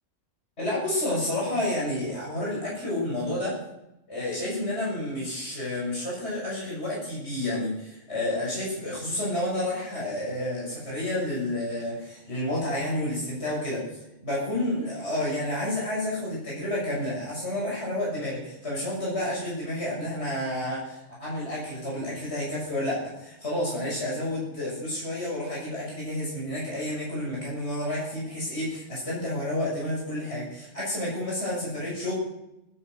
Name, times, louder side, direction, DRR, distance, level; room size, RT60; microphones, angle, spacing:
voice 1, 0.6-3.6 4.1-13.9 14.2-32.1, left 1 dB, 60° left, -6 dB, 6.9 m, -30 dB
20.5 x 10.0 x 6.5 m, 0.88 s
omnidirectional pair, 1.3 m